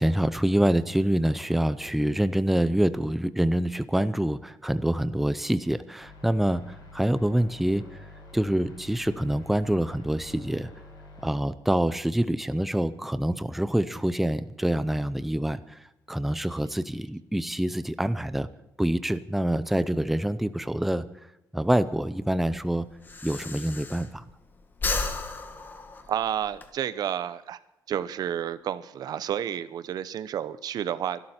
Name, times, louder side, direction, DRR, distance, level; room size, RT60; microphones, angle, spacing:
voice 1, 0.0-10.7 11.2-18.5 18.8-21.1 21.5-22.9 23.2-24.2, right 1 dB, 5° right, 13 dB, 0.6 m, -26 dB
sound 1, 6.0-11.3, left 2 dB, 85° left, 6.5 m, -48 dB
Breathing, 21.6-24.4 24.7-26.7, left 3 dB, 25° left, 1.5 m, -33 dB
voice 2, 26.1-27.6 27.9-31.2, right 10 dB, 60° right, 15 dB, 0.8 m, -30 dB
24.5 x 12.5 x 4.4 m, 0.90 s
cardioid pair, 155°, 7 cm